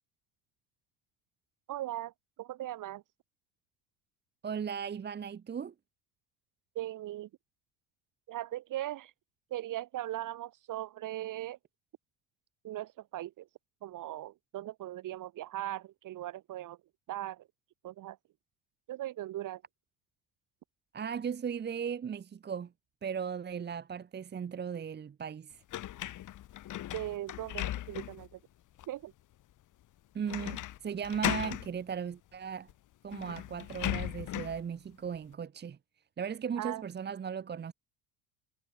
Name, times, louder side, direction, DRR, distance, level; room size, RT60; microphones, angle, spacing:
voice 1, 1.7-2.1 2.4-3.0 6.8-7.3 8.3-9.1 9.5-11.6 12.6-13.5 13.8-16.8 17.1-17.4 17.8-18.2 18.9-19.6 26.9-28.4 28.9-29.1 36.6-36.8, right 14 dB, 55° right, 7.3 m, -39 dB
voice 2, 4.4-5.7 20.9-22.7 23.0-25.6 30.1-32.7 33.0-35.8 36.2-37.7, right 7 dB, 25° right, 1.6 m, -37 dB
sound 1, 25.7-28.3 28.8-28.9 30.3-30.8 31.0-31.7 32.7-32.8 33.1-34.6, left 13 dB, 50° left, 5.9 m, -37 dB
supercardioid pair, 115°, 38 cm